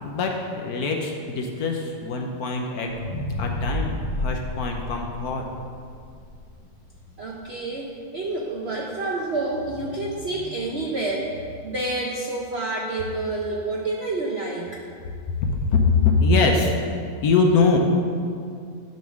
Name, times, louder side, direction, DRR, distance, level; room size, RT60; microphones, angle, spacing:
voice 1, 0.0-2.9 3.4-5.4 15.4-16.7 17.2-17.8, left 4 dB, 65° left, 2 dB, 1.1 m, -22 dB
sound 1, 2.9-7.1 7.6-7.7, left 1 dB, 90° left, 2.5 m, -31 dB
voice 2, 7.2-14.8, right 2 dB, 60° right, -2 dB, 0.6 m, -28 dB
10.5 x 3.5 x 6.2 m, 2.3 s
omnidirectional pair, 2.0 m